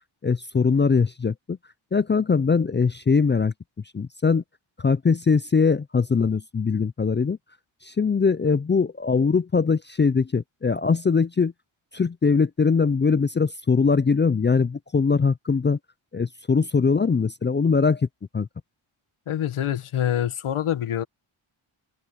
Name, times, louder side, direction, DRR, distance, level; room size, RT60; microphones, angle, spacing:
voice 1, 0.2-1.6 1.9-3.5 3.9-4.4 4.8-7.4 7.8-11.5 11.9-15.8 16.1-18.1 18.3-18.5, left 5 dB, 25° left, 0.4 m, -21 dB
voice 2, 19.3-21.0, left 10 dB, 85° left, 1.5 m, -25 dB
wide cardioid pair, 85°, 48 cm